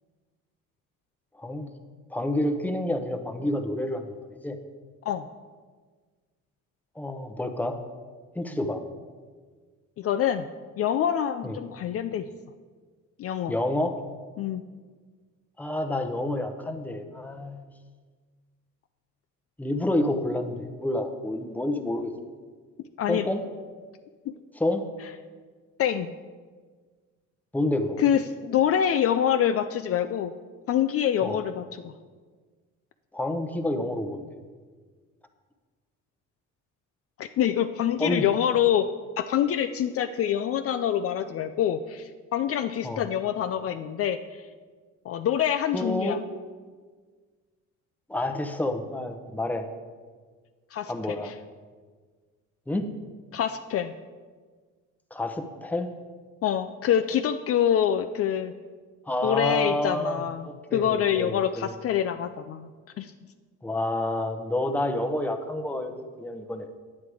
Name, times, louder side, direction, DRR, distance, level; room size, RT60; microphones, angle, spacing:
voice 1, 1.3-1.7 2.1-4.2 4.4-4.6 7.0-7.8 8.3-8.8 11.4-11.6 13.5-14.0 15.6-17.6 19.6-22.1 23.1-23.4 24.5-24.8 27.5-28.0 31.2-31.4 33.1-34.2 38.0-38.3 42.8-43.0 45.7-46.2 48.1-49.7 50.9-51.3 52.7-52.9 55.1-55.9 59.1-61.7 63.6-66.8, left 1 dB, 5° left, 6 dB, 0.8 m, -29 dB
voice 2, 10.0-10.5 10.8-12.3 13.2-13.5 14.4-14.6 23.0-23.3 24.3-24.4 25.8-26.1 28.0-30.3 30.7-31.9 37.2-38.9 39.2-44.5 45.1-46.2 50.7-50.9 51.2-51.3 53.3-53.9 56.4-58.5 59.2-60.4 60.7-62.7 63.0-63.1, left 9 dB, 50° left, 9 dB, 0.4 m, -25 dB
9.5 x 8.5 x 4.8 m, 1.5 s
cardioid pair, 125°, 30 cm